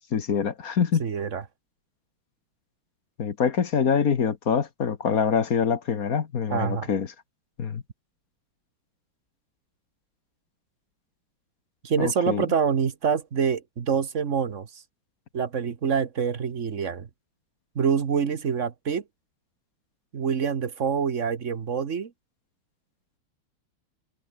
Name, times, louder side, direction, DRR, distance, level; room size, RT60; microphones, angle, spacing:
voice 1, 0.1-1.0 3.2-7.1 7.6-7.8 12.0-12.5, left 6 dB, 45° left, 1.6 m, -25 dB
voice 2, 1.0-1.4 6.5-6.9 11.8-14.7 15.3-17.1 17.7-19.0 20.1-22.1, right 6 dB, 40° right, 1.4 m, -26 dB
omnidirectional pair, 2.3 m